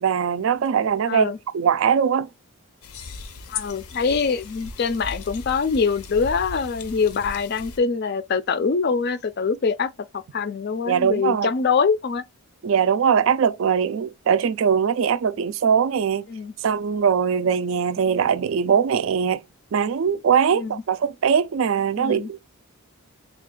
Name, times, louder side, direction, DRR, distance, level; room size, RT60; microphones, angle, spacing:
voice 1, 0.0-2.3 10.9-11.5 12.6-16.3 16.6-19.4 19.7-22.5, right 7 dB, 60° right, 0.3 m, -21 dB
voice 2, 1.1-1.4 3.5-12.2 16.3-16.5 20.5-20.8 22.0-22.3, left 5 dB, 45° left, 0.4 m, -24 dB
sound 1, 2.8-7.8, left 4 dB, 90° left, 0.6 m, -37 dB
3.4 x 2.4 x 3.7 m
head